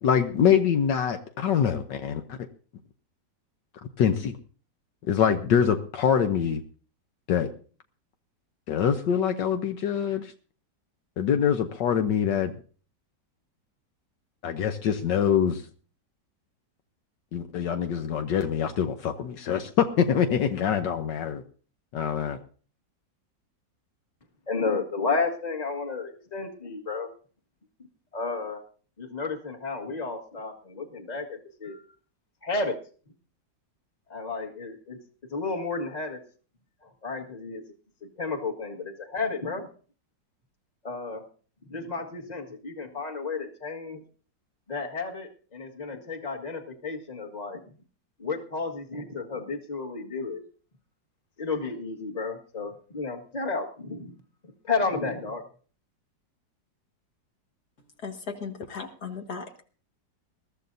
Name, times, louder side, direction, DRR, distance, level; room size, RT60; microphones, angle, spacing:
voice 1, 0.0-2.4 4.0-4.4 5.1-6.6 7.3-7.5 8.7-10.3 11.2-12.5 14.4-15.6 17.3-21.4 21.9-22.4, left 8 dB, 75° left, 7 dB, 1.5 m, -24 dB
voice 2, 24.5-27.1 28.1-28.6 29.0-31.8 32.4-32.8 34.1-35.0 35.3-36.2 36.8-37.6 38.0-39.7 40.8-41.2 41.7-44.0 44.7-47.6 48.2-50.4 51.4-54.1 54.4-55.4, left 4 dB, 25° left, 2 dB, 1.7 m, -32 dB
voice 3, 58.0-59.6, left 5 dB, 60° left, 4 dB, 2.2 m, -37 dB
21.5 x 13.5 x 2.7 m, 0.41 s
omnidirectional pair, 2.0 m